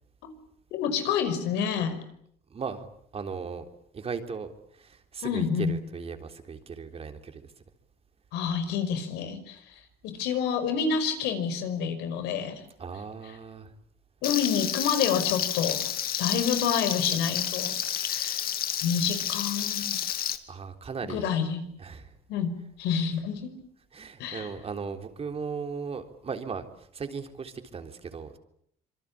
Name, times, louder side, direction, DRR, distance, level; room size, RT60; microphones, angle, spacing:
voice 1, 0.7-2.0 5.2-5.8 8.3-9.7 10.0-12.6 14.2-15.8 16.2-17.7 18.1-18.4 18.8-20.0 21.1-21.6 22.3-23.5 24.2-24.5, left 7 dB, 90° left, 9 dB, 5.3 m, -28 dB
voice 2, 2.5-2.9 3.1-3.7 3.9-7.4 12.8-13.7 20.5-21.3 21.8-22.1 23.9-28.4, right 5 dB, 35° right, 7 dB, 3.7 m, -37 dB
Frying (food), 14.2-20.4, left 10 dB, 60° left, 2.4 m, -30 dB
26.5 x 24.0 x 8.7 m, 0.70 s
cardioid pair, 110°, 17 cm